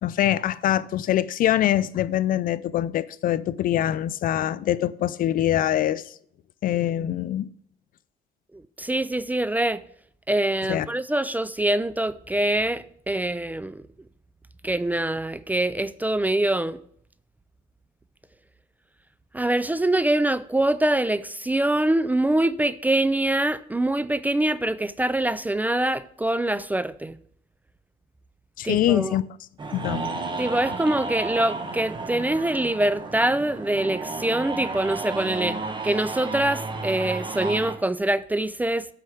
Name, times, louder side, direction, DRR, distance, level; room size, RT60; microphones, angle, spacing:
voice 1, 0.0-6.0 6.6-7.5 10.7-10.9 28.6-29.3 29.7-30.1, left 12 dB, 55° left, 0.5 m, -24 dB
voice 2, 8.8-9.8 10.3-13.8 14.6-16.8 19.3-27.2 28.6-29.1 30.4-38.9, right 1 dB, 10° right, 0.4 m, -24 dB
sound 1, 29.6-37.7, right 3 dB, 25° right, 1.5 m, -32 dB
8.0 x 5.7 x 7.7 m
cardioid pair, 110°, 17 cm